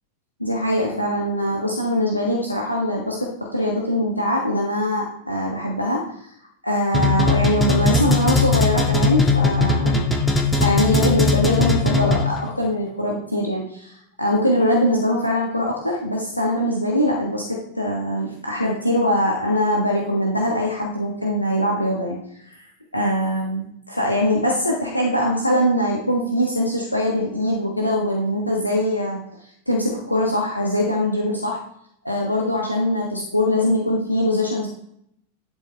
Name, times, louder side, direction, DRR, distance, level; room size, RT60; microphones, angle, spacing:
voice 1, 0.4-6.1 6.6-10.1 10.5-22.6 22.9-29.2 29.7-31.6 32.0-34.7, left 1 dB, 85° left, -2 dB, 1.3 m, -22 dB
sound 1, 6.9-12.5, left 2 dB, 10° left, 1.6 m, -19 dB
11.0 x 4.8 x 3.3 m, 0.72 s
figure-of-eight pair, 90°, 0 cm